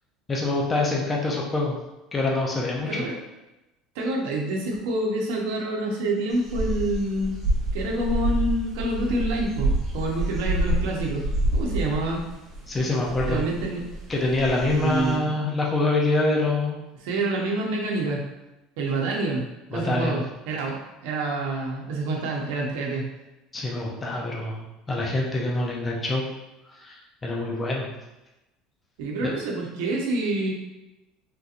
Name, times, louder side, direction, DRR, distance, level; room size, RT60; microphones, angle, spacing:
voice 1, 0.3-1.8 2.1-3.0 12.7-13.4 14.1-16.8 19.7-20.2 23.5-26.2 26.8-27.9 29.2-29.3, left 2 dB, 15° left, -2 dB, 0.5 m, -25 dB
voice 2, 3.9-7.4 7.7-11.2 11.5-12.3 13.3-13.8 14.7-15.3 17.0-18.2 18.8-19.5 19.7-20.8 21.0-23.1 29.0-30.5, right 2 dB, 90° right, -1 dB, 0.8 m, -27 dB
sound 1, 6.3-15.2, right 1 dB, 20° right, 0.8 m, -28 dB
3.7 x 2.9 x 2.5 m, 0.98 s
cardioid pair, 165°, 0 cm